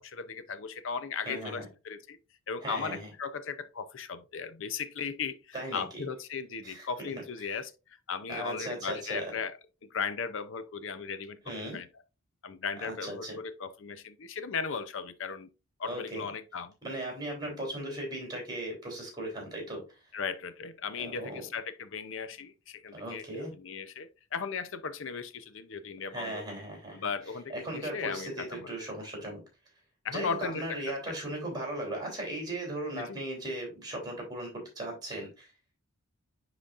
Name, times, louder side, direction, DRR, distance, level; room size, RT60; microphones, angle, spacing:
voice 1, 0.0-2.2 2.5-9.5 9.8-11.4 11.7-11.9 12.4-15.5 15.8-16.7 17.5-17.6 20.1-23.3 23.5-26.4 26.9-28.7 30.0-31.2 32.9-33.2, left 5 dB, 65° left, 0.6 m, -37 dB
voice 2, 1.2-1.7 2.6-3.1 5.5-6.0 6.6-6.9 7.4-7.5 8.3-9.3 11.4-11.8 12.8-13.4 15.8-16.2 16.8-20.0 21.0-21.4 22.9-23.5 26.1-27.1 27.5-29.4 30.1-35.5, right 1 dB, 20° right, 3.2 m, -37 dB
10.0 x 4.0 x 2.5 m
head